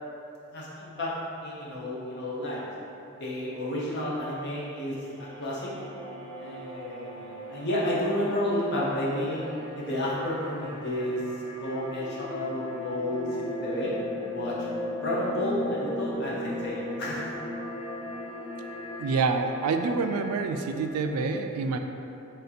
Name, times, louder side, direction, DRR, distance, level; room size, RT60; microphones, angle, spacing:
voice 1, 0.5-1.1 1.4-2.6 3.2-5.6 6.4-9.4 9.7-11.2 11.6-13.9 14.3-14.5 15.0-17.3, left 1 dB, 55° left, -7 dB, 0.9 m, -31 dB
sound 1, 4.4-21.3, left 1 dB, 10° left, 1.5 m, -38 dB
voice 2, 19.0-21.8, right 4 dB, 85° right, 11 dB, 0.3 m, -27 dB
3.6 x 2.8 x 3.9 m, 2.8 s
head